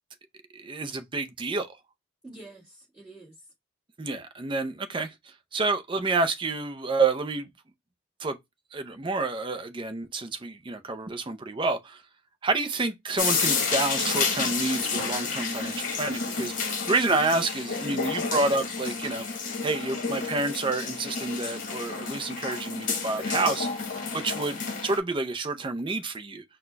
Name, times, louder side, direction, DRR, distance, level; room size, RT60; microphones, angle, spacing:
voice 1, 0.5-1.8 4.0-5.1 5.5-7.5 8.2-8.4 8.7-12.0 12.4-19.2 19.6-23.7 24.1-24.6 24.8-26.4, right 3 dB, 20° right, 0.4 m, -28 dB
voice 2, 2.2-3.5 24.4-24.7, right 2 dB, 5° right, 1.7 m, -48 dB
sound 1, 13.2-25.0, left 5 dB, 35° left, 1.1 m, -30 dB
4.2 x 2.2 x 4.4 m
head